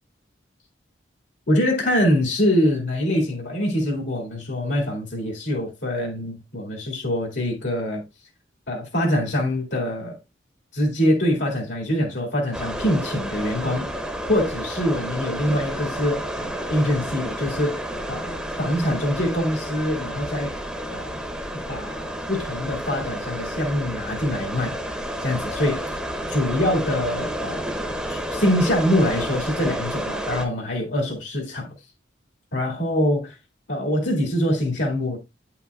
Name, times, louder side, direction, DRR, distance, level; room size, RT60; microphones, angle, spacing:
voice 1, 1.5-8.0 8.7-10.2 10.7-14.0 14.3-20.5 20.9-21.2 21.7-24.7 25.2-25.9 26.3-27.7 28.1-31.7 32.5-33.4 33.7-35.2, left 1 dB, 70° left, 2.1 m, -24 dB
sound 1, 12.5-30.5, equal, 5° right, 0.9 m, -31 dB
9.2 x 5.8 x 2.3 m
head